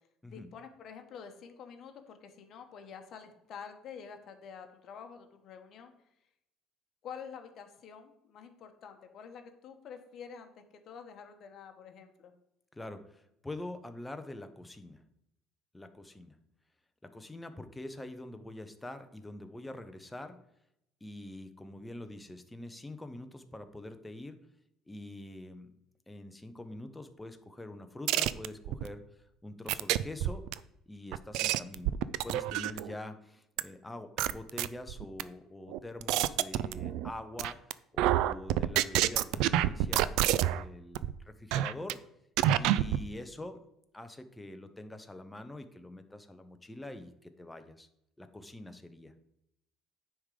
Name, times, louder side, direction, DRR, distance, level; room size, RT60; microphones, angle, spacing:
voice 1, 0.3-5.9 7.0-12.3, left 7 dB, 45° left, 6 dB, 1.1 m, -48 dB
voice 2, 12.7-15.0 15.7-16.4 17.0-20.4 21.0-24.4 24.9-25.7 26.1-29.0 29.4-30.4 30.9-37.7 37.9-42.0 42.6-43.6 43.9-47.9 48.2-49.1, left 1 dB, 10° left, 8 dB, 0.7 m, -45 dB
sound 1, 28.1-28.9 29.7-30.5 31.1-32.9 33.6-33.7 34.2-35.2 35.7-37.1 37.4-37.7 38.0-40.6 40.9-41.1 41.5-41.9 42.4-43.0, right 13 dB, 75° right, 0.3 m, -28 dB
9.7 x 3.7 x 4.9 m, 0.81 s
cardioid pair, 140°, 0 cm